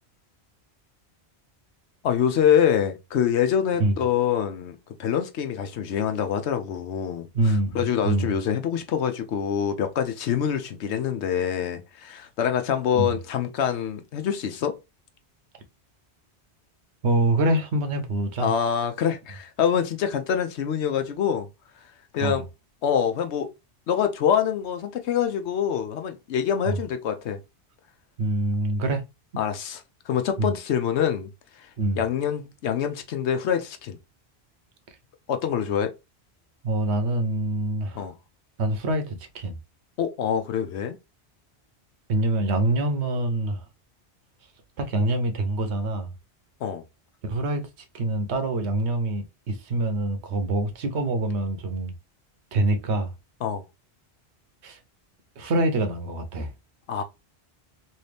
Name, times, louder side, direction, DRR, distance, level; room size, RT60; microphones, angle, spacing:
voice 1, 2.0-7.3 7.7-14.8 18.4-21.5 22.1-22.4 22.8-23.5 23.9-27.4 29.4-31.3 32.0-34.0 35.3-35.9 37.9-38.1 40.0-41.0 46.6-46.8 53.4-53.6 56.9-57.0, left 8 dB, 80° left, 0.9 m, -25 dB
voice 2, 7.3-8.3 12.9-13.2 17.0-18.5 22.2-22.4 26.7-26.8 28.2-29.0 30.4-30.5 31.8-32.0 36.6-38.0 38.6-39.6 42.1-43.6 44.8-46.1 47.2-47.6 47.9-51.9 52.5-53.1 54.6-54.8 55.4-56.5, right 2 dB, 80° right, 1.0 m, -25 dB
3.2 x 2.8 x 3.3 m
omnidirectional pair, 1.1 m